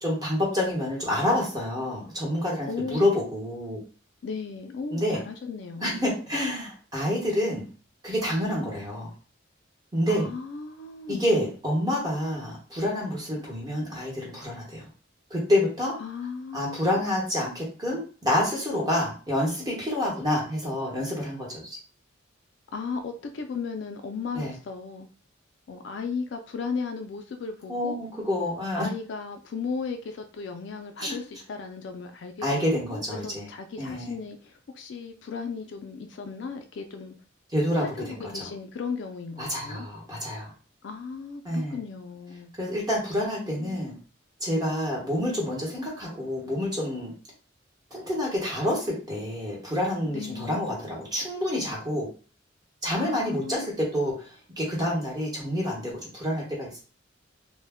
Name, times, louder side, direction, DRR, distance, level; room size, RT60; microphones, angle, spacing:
voice 1, 0.0-3.8 4.9-5.2 5.8-7.7 8.0-9.1 9.9-10.3 11.1-14.8 15.3-16.0 16.5-21.8 24.3-24.6 27.7-28.9 31.0-31.1 32.4-33.5 33.8-34.2 37.5-38.5 39.4-40.5 41.4-41.8 42.6-44.0 44.4-47.1 47.9-52.1 52.8-54.3 54.6-56.8, left 1 dB, 20° right, -4 dB, 0.9 m, -28 dB
voice 2, 2.7-3.1 4.2-6.1 10.1-11.2 16.0-17.0 22.7-25.1 25.7-28.0 28.7-37.1 37.8-39.9 40.8-42.5 43.3-43.8 50.1-50.7 53.0-53.7, left 5 dB, 60° left, 6 dB, 0.3 m, -36 dB
2.1 x 2.1 x 3.4 m, 0.38 s
head